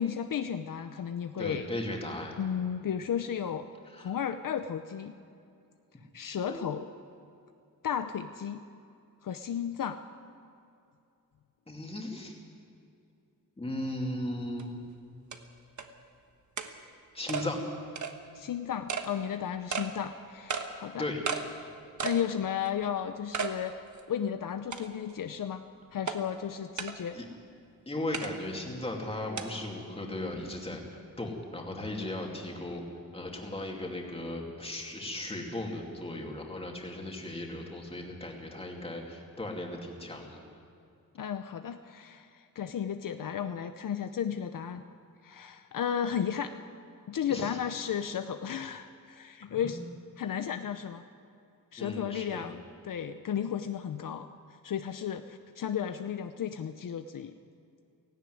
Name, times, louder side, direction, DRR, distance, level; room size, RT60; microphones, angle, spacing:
voice 1, 0.0-1.7 2.4-3.7 4.0-5.1 6.1-6.9 7.8-8.6 9.2-10.0 18.3-21.0 22.0-23.7 24.1-25.6 25.9-27.2 41.1-44.8 45.2-46.5 47.1-49.8 50.2-51.0 51.7-54.3 54.6-57.3, left 8 dB, 65° left, 9 dB, 0.7 m, -34 dB
voice 2, 1.4-2.4 3.9-4.2 6.5-6.7 11.7-12.4 13.6-14.8 17.1-17.6 21.0-21.2 27.1-27.3 27.9-32.9 33.1-40.4 47.3-47.6 49.5-49.8 51.8-52.5, left 1 dB, 15° left, 0 dB, 2.6 m, -37 dB
sound 1, 14.6-14.7 15.3-15.4 15.8-15.9 16.6-16.7 17.3-17.5 18.0-18.1 18.9-19.1 19.7-19.9 20.5-20.7 21.3-21.4 22.0-22.2 22.7-22.8 23.3-23.5 24.0-24.1 24.7-25.1 26.1-26.2 26.8-26.9 28.1-28.3 29.4-29.5, right 6 dB, 55° right, 1.3 m, -33 dB
17.5 x 16.0 x 9.4 m, 2.6 s
wide cardioid pair, 175°, 35 cm